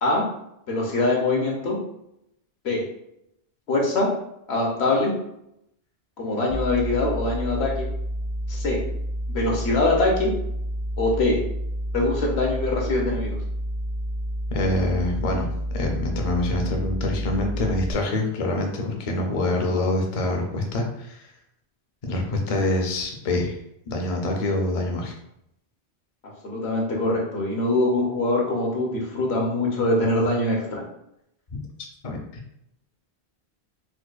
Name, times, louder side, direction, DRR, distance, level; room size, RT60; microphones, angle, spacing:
voice 1, 0.7-1.8 2.6-2.8 3.7-4.1 4.5-5.1 6.2-7.9 8.5-8.8 9.3-10.3 11.0-11.4 11.9-13.4 26.4-30.8, left 2 dB, 75° left, -1 dB, 1.1 m, -23 dB
sound 1, 6.5-17.9, equal, 60° right, 0.7 m, -29 dB
voice 2, 14.5-21.2 22.1-23.6 23.9-25.1 32.0-32.2, left 2 dB, 45° left, 2 dB, 0.5 m, -25 dB
4.3 x 2.2 x 2.4 m, 0.79 s
omnidirectional pair, 1.1 m